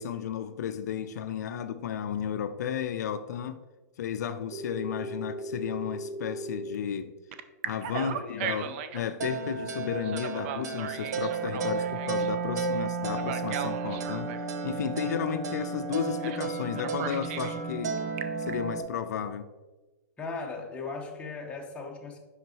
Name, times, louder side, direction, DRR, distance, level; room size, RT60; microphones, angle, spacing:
voice 1, 0.0-3.6 4.0-7.1 7.6-14.4 14.6-18.0 18.4-19.5, left 8 dB, 75° left, 10 dB, 0.4 m, -33 dB
Telephone, 4.5-6.8 7.3-9.1 10.0-12.3 13.1-14.5 16.2-16.5 16.7-17.5 18.0-18.5, right 6 dB, 45° right, 0.5 m, -37 dB
voice 2, 7.9-8.8 20.2-22.2, left 4 dB, 15° left, -1 dB, 1.1 m, -38 dB
sound 1, 9.2-18.8, right 4 dB, 75° right, 0.7 m, -33 dB
5.9 x 5.5 x 3.0 m, 1.2 s
hypercardioid pair, 140°, 9 cm